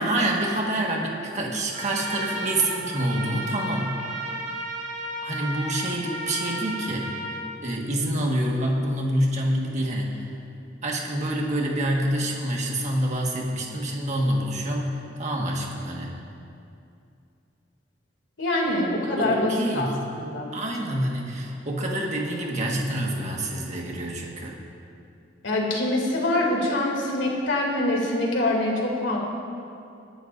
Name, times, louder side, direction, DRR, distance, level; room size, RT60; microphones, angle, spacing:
voice 1, 0.0-3.9 5.2-7.0 7.6-10.3 10.8-16.2 19.2-20.0 20.5-24.5, right 1 dB, 40° right, -1 dB, 1.6 m, -27 dB
Trumpet, 1.7-7.4, right 1 dB, 70° right, 2.9 m, -33 dB
voice 2, 18.4-19.9 20.2-20.4 25.4-29.2, left 1 dB, 90° left, -2 dB, 2.8 m, -24 dB
22.0 x 11.0 x 2.6 m, 2.5 s
head